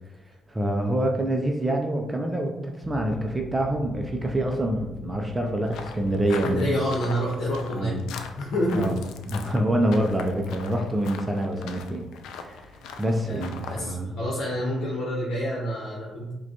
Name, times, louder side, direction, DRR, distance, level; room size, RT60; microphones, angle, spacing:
voice 1, 0.5-6.8 7.7-8.0 8.7-8.9 9.3-12.1 12.3-14.2, right 1 dB, 15° right, 2 dB, 0.4 m, -26 dB
sound 1, 2.8-13.8, equal, 75° right, 0.7 m, -43 dB
sound 2, 5.7-13.8, left 6 dB, 85° left, 0.3 m, -41 dB
voice 2, 6.4-8.0 8.4-8.9 9.3-9.4 13.3-16.3, equal, 70° left, -3 dB, 0.9 m, -28 dB
4.8 x 2.3 x 2.9 m, 0.99 s
cardioid pair, 90°, 0 cm